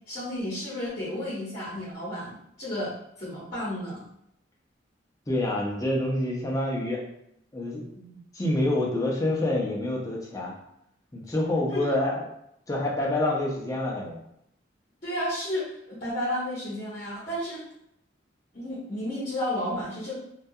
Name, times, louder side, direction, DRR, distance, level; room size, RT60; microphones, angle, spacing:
voice 1, 0.1-4.0 11.7-11.9 15.0-17.6 18.5-20.1, left 1 dB, 45° left, -10 dB, 0.8 m, -32 dB
voice 2, 5.3-7.0 7.5-10.5 11.1-12.2 12.7-14.2, left 1 dB, 20° left, -3 dB, 0.5 m, -27 dB
2.3 x 2.2 x 2.6 m, 0.76 s
head